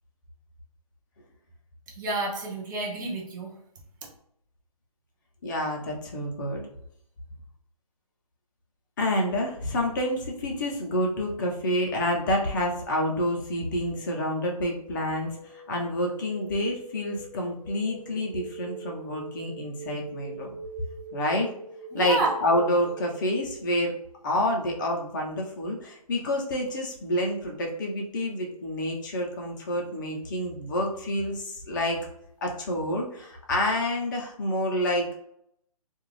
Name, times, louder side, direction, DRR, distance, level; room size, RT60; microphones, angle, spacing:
voice 1, 2.0-3.5 21.9-22.3, right 3 dB, 30° right, -1 dB, 0.7 m, -29 dB
voice 2, 5.4-6.6 9.0-20.5 21.1-21.5 21.9-23.9 24.2-32.0 32.4-35.2, left 1 dB, 30° left, 0 dB, 0.6 m, -28 dB
sound 1, 13.5-23.4, right 3 dB, 10° left, 1.1 m, -44 dB
2.4 x 2.3 x 3.1 m, 0.73 s
hypercardioid pair, 150°, 19 cm